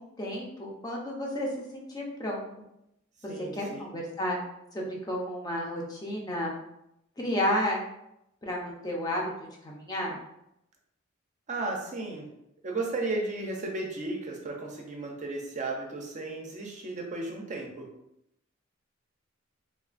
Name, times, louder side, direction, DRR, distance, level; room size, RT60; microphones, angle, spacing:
voice 1, 0.0-2.4 3.5-4.4 4.7-6.5 7.2-7.8 8.4-9.2 9.6-10.2, left 1 dB, 20° left, -2 dB, 0.6 m, -32 dB
voice 2, 3.3-3.9 11.5-12.3 12.6-17.9, right 2 dB, 35° right, 0 dB, 0.5 m, -34 dB
3.2 x 2.3 x 2.4 m, 0.82 s
head